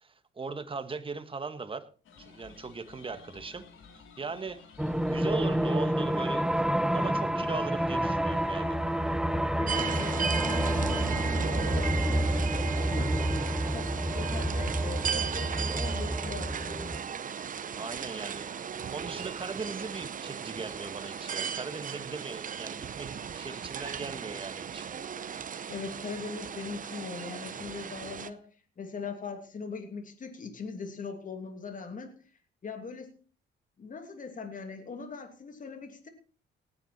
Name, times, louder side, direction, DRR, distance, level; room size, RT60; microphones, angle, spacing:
voice 1, 0.0-1.8 2.2-3.6 3.9-4.7 5.1-6.4 6.7-8.8 17.7-18.5 18.9-24.9, right 4 dB, 25° right, 10 dB, 1.6 m, -39 dB
sound 1, 2.0-10.6, left 5 dB, 80° left, 3.7 m, -52 dB
sound 2, 4.8-17.0, right 1 dB, 5° right, 0.7 m, -29 dB
voice 2, 9.6-13.1 13.7-16.9 25.7-28.5 28.8-32.1 32.6-33.2 33.8-36.1, left 4 dB, 40° left, 6 dB, 2.8 m, -41 dB
sound 3, 9.7-28.3, right 7 dB, 40° right, 0.9 m, -36 dB
18.0 x 9.8 x 4.4 m, 0.38 s
cardioid pair, 90°, 20 cm